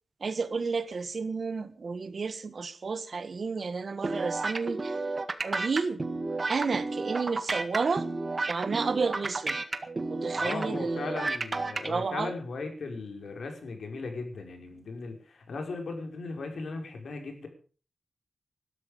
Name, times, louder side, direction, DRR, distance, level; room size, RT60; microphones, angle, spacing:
voice 1, 0.2-5.0 5.4-6.0 6.5-8.1 8.5-9.6 9.9-11.0 11.9-12.3, right 4 dB, 55° right, 1.5 m, -31 dB
sound 1, 4.0-11.9, right 3 dB, 35° right, 1.7 m, -32 dB
voice 2, 10.3-17.5, left 3 dB, 90° left, 5.4 m, -37 dB
20.5 x 12.5 x 5.2 m
wide cardioid pair, 145°, 0 cm